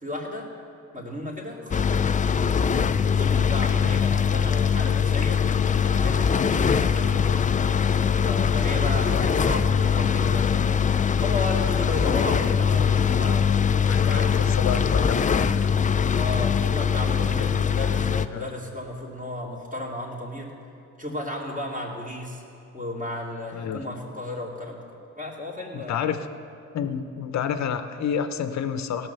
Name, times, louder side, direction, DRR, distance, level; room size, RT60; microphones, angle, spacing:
voice 1, 0.0-0.5 0.9-2.0 3.1-7.5 8.2-10.8 11.2-13.5 13.8-14.9 16.1-20.5 21.0-22.4 22.7-24.8 25.1-26.1, left 1 dB, 25° right, -2 dB, 2.7 m, -34 dB
sound 1, 1.7-18.3, left 7 dB, 25° left, 0.4 m, -22 dB
voice 2, 13.9-15.5 18.3-18.5 23.5-23.8 25.7-26.3 26.7-29.1, left 8 dB, 55° left, 10 dB, 0.8 m, -29 dB
17.0 x 6.2 x 6.8 m, 2.6 s
cardioid pair, 80°, 34 cm